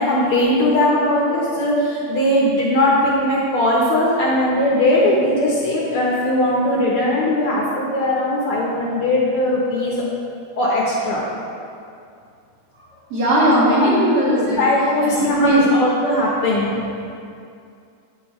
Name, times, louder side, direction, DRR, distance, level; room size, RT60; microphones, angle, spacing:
voice 1, 0.0-10.0 10.6-11.2 13.6-13.9 14.2-16.7, left 1 dB, 70° left, -5 dB, 1.3 m, -19 dB
voice 2, 13.1-14.6 15.0-15.6, right 1 dB, 50° right, -7 dB, 2.6 m, -17 dB
9.4 x 7.0 x 3.0 m, 2.4 s
omnidirectional pair, 3.7 m